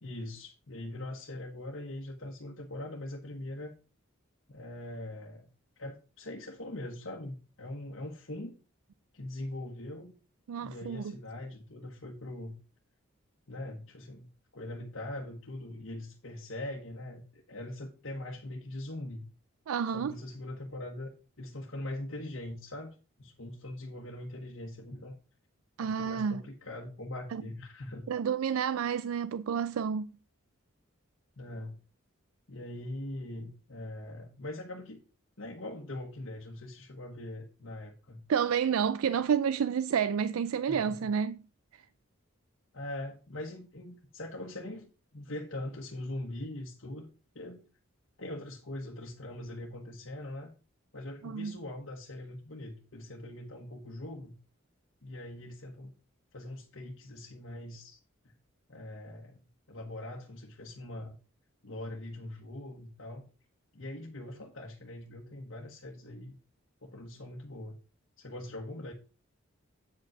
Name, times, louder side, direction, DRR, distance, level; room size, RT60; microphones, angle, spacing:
voice 1, 0.0-3.7 4.5-5.5 5.8-8.5 9.1-10.1 10.6-12.6 13.5-19.3 19.9-21.1 21.4-25.2 25.8-28.1 31.4-31.8 32.5-35.0 35.4-38.2 40.7-41.1 42.7-47.1 47.3-47.6 48.2-50.5 50.9-54.3 55.0-55.9 56.3-58.0 58.7-59.4 59.7-61.1 61.6-63.2 63.7-66.4 66.8-67.8 68.2-68.9, left 1 dB, 65° left, 1.3 m, -42 dB
voice 2, 10.5-11.1 19.7-20.2 25.8-26.4 27.3-27.4 28.1-30.1 38.3-41.4 41.7-41.9 51.2-51.5, right 7 dB, 85° right, 0.4 m, -30 dB
8.4 x 5.3 x 5.9 m
head